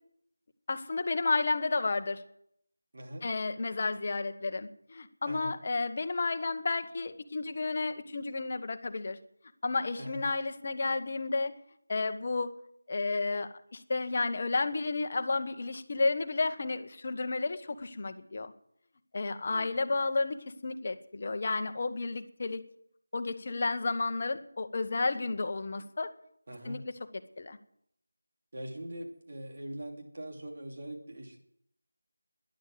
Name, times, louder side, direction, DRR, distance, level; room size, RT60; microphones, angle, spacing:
voice 1, 0.7-2.2 3.2-9.2 9.6-11.5 11.9-12.5 12.9-18.5 19.1-22.6 23.1-26.1 26.6-26.8 27.4-27.6, left 3 dB, 40° left, 8 dB, 1.1 m, -32 dB
voice 2, 2.9-3.3 5.3-5.6 10.0-10.2 19.5-19.7 26.5-26.8 28.5-31.4, right 1 dB, 45° right, 1 dB, 3.1 m, -42 dB
12.0 x 10.5 x 7.8 m, 0.71 s
figure-of-eight pair, 165°, 0 cm